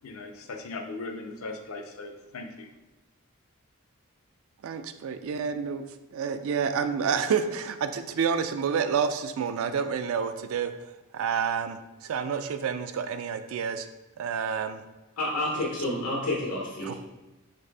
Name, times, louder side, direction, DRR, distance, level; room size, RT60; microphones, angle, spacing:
voice 1, 0.0-2.7, left 3 dB, 70° left, 5 dB, 0.5 m, -38 dB
voice 2, 4.6-5.8 6.1-13.9 14.2-14.8 16.8-16.9, right 6 dB, 70° right, 10 dB, 0.3 m, -29 dB
voice 3, 15.2-16.9, left 1 dB, 90° left, -3 dB, 0.8 m, -29 dB
4.0 x 3.3 x 3.3 m, 1.1 s
head